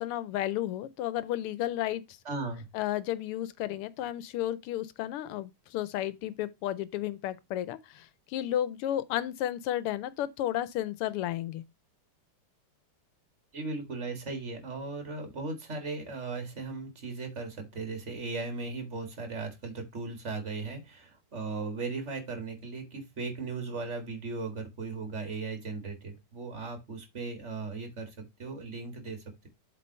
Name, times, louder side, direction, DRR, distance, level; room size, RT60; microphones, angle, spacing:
voice 1, 0.0-2.0 2.7-11.6, left 12 dB, 90° left, 1.6 m, -32 dB
voice 2, 2.3-2.7 13.5-29.5, right 3 dB, 35° right, 2.2 m, -37 dB
7.7 x 3.7 x 5.3 m
omnidirectional pair, 2.4 m